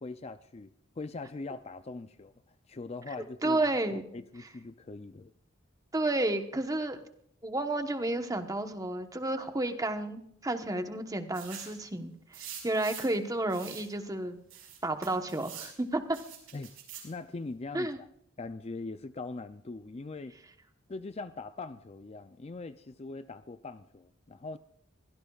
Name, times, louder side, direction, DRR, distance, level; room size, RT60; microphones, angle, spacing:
voice 1, 0.0-2.3 2.7-3.6 3.9-5.3 16.5-16.7 17.0-18.1 18.4-20.4 20.9-24.6, left 3 dB, 30° left, 11 dB, 0.4 m, -41 dB
voice 2, 3.4-4.0 5.9-7.0 7.4-12.1 12.4-14.4 14.8-16.2 17.7-18.0, right 2 dB, 15° right, 7 dB, 1.1 m, -31 dB
sound 1, 11.3-11.8 12.3-13.2 13.5-13.9 14.5-15.8 16.1-17.1, right 9 dB, 80° right, 5.2 m, -45 dB
23.5 x 16.5 x 2.4 m, 0.71 s
head